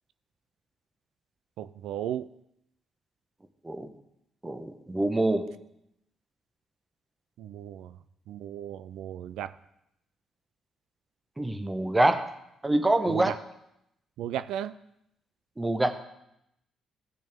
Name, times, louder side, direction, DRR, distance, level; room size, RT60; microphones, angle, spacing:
voice 1, 1.6-2.3 7.4-8.0 8.3-9.5 13.1-13.3 14.2-14.8, right 10 dB, 85° right, 13 dB, 0.3 m, -35 dB
voice 2, 4.4-5.5 11.4-12.2 12.6-13.3 15.6-16.0, right 1 dB, 15° right, 8 dB, 1.0 m, -25 dB
16.0 x 6.2 x 3.5 m, 0.81 s
cardioid pair, 90°, 0 cm